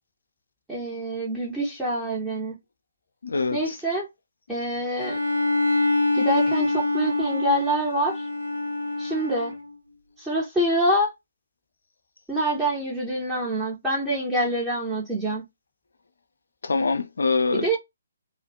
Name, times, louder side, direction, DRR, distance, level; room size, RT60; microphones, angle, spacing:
voice 1, 0.7-2.5 3.5-4.1 4.5-5.2 6.1-8.2 9.0-9.5 10.2-11.1 12.3-15.4 17.5-17.8, right 1 dB, 5° right, 0.7 m, -26 dB
voice 2, 3.2-3.7 16.6-17.8, left 4 dB, 65° left, 0.4 m, -24 dB
Bowed string instrument, 5.0-9.7, left 2 dB, 85° right, 0.9 m, -25 dB
2.4 x 2.0 x 2.6 m
figure-of-eight pair, 135°, 0 cm